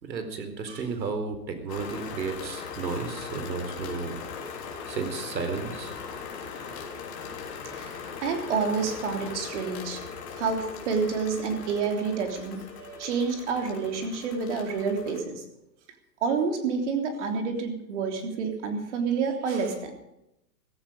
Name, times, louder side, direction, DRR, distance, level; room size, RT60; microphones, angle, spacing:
voice 1, 0.0-4.4 4.9-5.9, right 4 dB, 90° right, 8 dB, 4.3 m, -33 dB
sound 1, 1.7-15.2, left 6 dB, 40° left, 3.5 m, -39 dB
voice 2, 7.0-10.0 10.4-15.4 16.2-19.9, right 5 dB, 45° right, 5 dB, 3.5 m, -29 dB
16.0 x 14.0 x 5.3 m, 0.84 s
hypercardioid pair, 165°, 50 cm